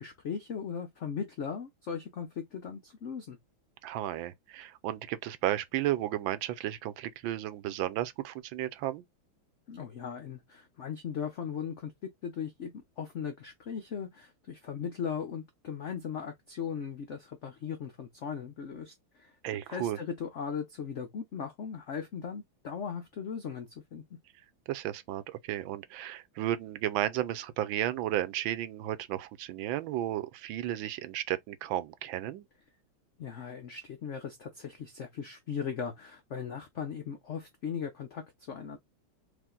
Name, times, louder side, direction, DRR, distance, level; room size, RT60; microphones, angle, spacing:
voice 1, 0.0-3.4 9.7-11.9 12.2-19.3 19.7-24.0 33.2-38.8, left 7 dB, 85° left, 0.6 m, -38 dB
voice 2, 3.8-9.0 19.4-20.0 24.7-32.4, right 13 dB, 80° right, 1.3 m, -33 dB
4.9 x 2.6 x 3.7 m
omnidirectional pair, 2.2 m